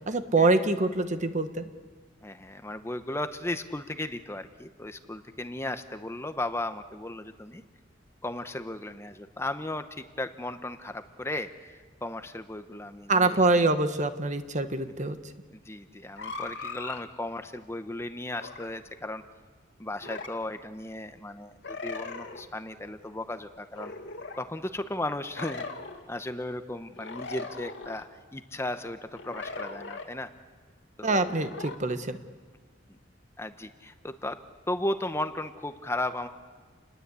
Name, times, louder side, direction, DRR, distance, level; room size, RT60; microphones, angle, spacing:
voice 1, 0.1-1.7 13.1-15.2 31.0-32.2, right 3 dB, 40° right, 9 dB, 1.3 m, -25 dB
voice 2, 2.2-7.6 8.2-13.4 15.0-15.1 15.5-19.2 19.8-23.9 24.4-25.7 26.1-30.3 31.0-31.2 32.9-33.0 33.4-34.4 34.7-36.3, left 1 dB, 15° left, 9 dB, 0.9 m, -35 dB
sound 1, 16.2-17.0 18.4-18.7 20.0-20.4 21.6-22.4 23.7-24.4 25.4-26.0 27.0-28.0 29.1-30.1 31.1-31.8, left 3 dB, 65° left, 2.3 m, -39 dB
29.5 x 20.5 x 8.3 m, 1.5 s
head